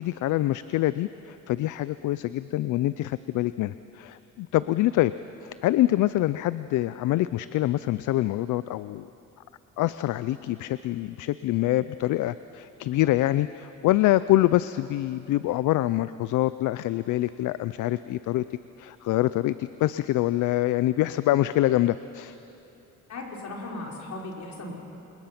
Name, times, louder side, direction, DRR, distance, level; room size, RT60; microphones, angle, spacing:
voice 1, 0.0-5.1 5.4-9.1 9.8-18.4 18.8-22.4, left 15 dB, 80° left, 15 dB, 0.5 m, -25 dB
voice 2, 23.1-24.7, left 2 dB, 65° left, -1 dB, 4.5 m, -37 dB
27.0 x 21.5 x 5.9 m, 3.0 s
cardioid pair, 90°, 30 cm